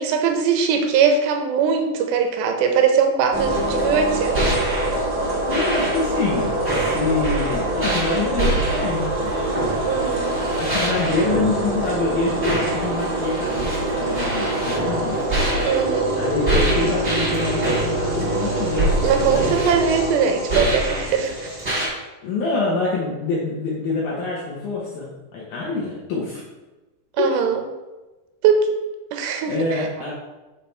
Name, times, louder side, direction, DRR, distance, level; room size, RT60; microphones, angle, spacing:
voice 1, 0.0-4.6 9.8-10.4 15.7-16.1 19.0-21.5 27.2-27.6 28.4-28.6 29.1-29.9, right 6 dB, 85° right, 4 dB, 2.9 m, -21 dB
sound 1, 3.3-21.9, right 1 dB, 45° right, 0.7 m, -23 dB
voice 2, 5.5-9.5 10.6-15.2 16.1-19.6 22.2-26.4 27.2-27.3 29.5-30.1, left 3 dB, 85° left, -4 dB, 1.7 m, -26 dB
7.3 x 4.2 x 4.5 m, 1.1 s
omnidirectional pair, 5.0 m